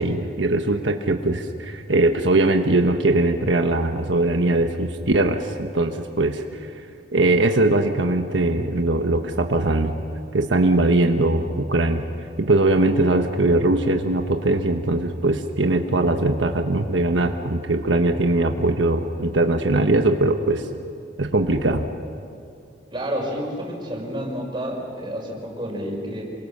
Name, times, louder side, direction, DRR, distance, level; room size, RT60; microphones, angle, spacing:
voice 1, 0.0-6.4 7.1-9.9 10.3-12.0 12.4-20.6 21.2-21.8, right 2 dB, 90° right, 5 dB, 1.3 m, -20 dB
voice 2, 22.9-26.2, equal, 25° right, -1 dB, 5.7 m, -29 dB
28.0 x 24.0 x 6.7 m, 2.4 s
head